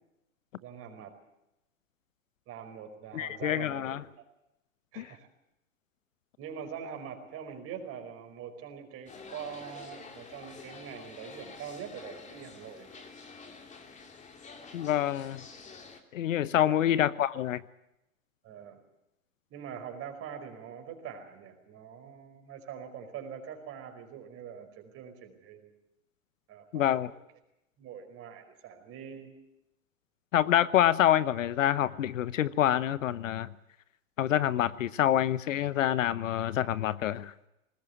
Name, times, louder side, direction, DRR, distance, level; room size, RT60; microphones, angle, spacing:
voice 1, 0.6-1.1 2.5-4.0 4.9-5.3 6.4-13.1 16.5-16.8 18.4-18.8 19.5-25.7 26.5-26.9 27.8-29.3, right 7 dB, 35° right, 5 dB, 5.0 m, -43 dB
voice 2, 3.1-4.0 5.0-5.1 14.7-15.4 16.1-17.6 26.7-27.1 30.3-33.5 34.2-37.3, left 11 dB, 70° left, 17 dB, 1.0 m, -27 dB
sound 1, 9.1-16.0, left 4 dB, 15° left, 2.7 m, -48 dB
20.0 x 19.5 x 8.0 m, 0.88 s
hypercardioid pair, 110°, 41 cm